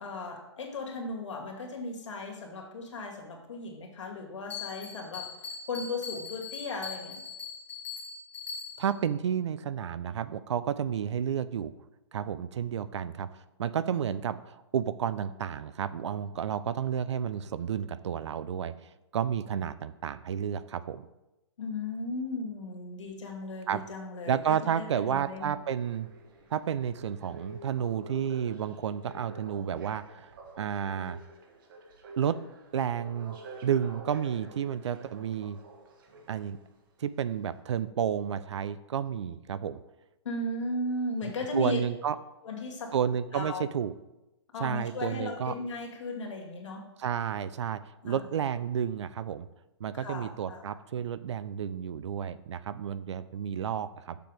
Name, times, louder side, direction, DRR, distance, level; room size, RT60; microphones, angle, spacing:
voice 1, 0.0-5.3 5.7-7.2 21.6-25.5 40.2-41.8 42.4-42.9 43.3-43.7 44.5-46.9 48.0-48.2 49.9-50.6, left 2 dB, 75° left, 0 dB, 2.4 m, -36 dB
Bell, 4.5-9.0, left 5 dB, 10° left, 1.5 m, -41 dB
voice 2, 8.8-11.7 12.1-13.3 13.6-21.1 23.7-23.8 24.3-26.1 26.5-31.2 32.2-32.4 32.7-33.4 33.6-35.6 36.3-36.6 37.0-39.8 41.5-42.2 42.9-43.9 44.6-45.5 47.0-49.5 49.8-54.2, right 8 dB, 70° right, 15 dB, 0.5 m, -31 dB
sound 1, 25.2-36.8 37.4-37.5, right 1 dB, 45° right, 1.3 m, -49 dB
6.7 x 6.1 x 5.0 m, 0.97 s
hypercardioid pair, 155°, 15 cm